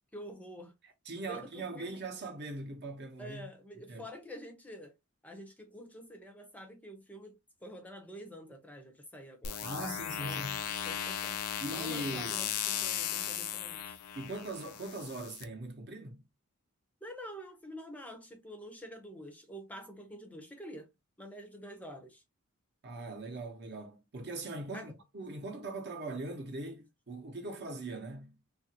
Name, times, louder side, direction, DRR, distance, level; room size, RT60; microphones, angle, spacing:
voice 1, 0.1-0.8 1.3-1.9 3.2-4.9 5.2-9.7 10.2-10.5 10.9-11.4 11.7-14.0 17.0-20.9 21.2-22.2 24.7-24.9, equal, 5° left, 0.5 m, -47 dB
voice 2, 0.8-3.5 3.9-4.1 9.6-10.6 11.6-12.3 14.2-16.2 22.8-28.3, right 2 dB, 50° right, 0.7 m, -41 dB
sound 1, 9.4-15.4, left 10 dB, 75° left, 0.4 m, -37 dB
2.8 x 2.4 x 2.7 m
head